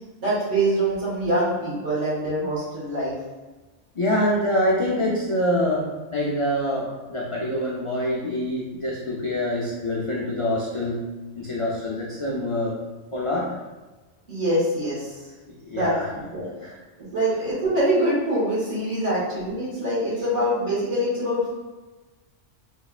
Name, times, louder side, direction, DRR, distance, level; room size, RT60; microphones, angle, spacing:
voice 1, 0.2-3.1 14.3-15.3 15.7-16.4 17.0-21.6, right 1 dB, 70° right, -11 dB, 1.9 m, -24 dB
voice 2, 4.0-11.0 11.4-12.8 13.1-13.5 15.6-16.1 16.6-16.8, left 1 dB, 50° left, -5 dB, 0.3 m, -25 dB
3.5 x 3.1 x 2.4 m, 1.2 s
omnidirectional pair, 1.3 m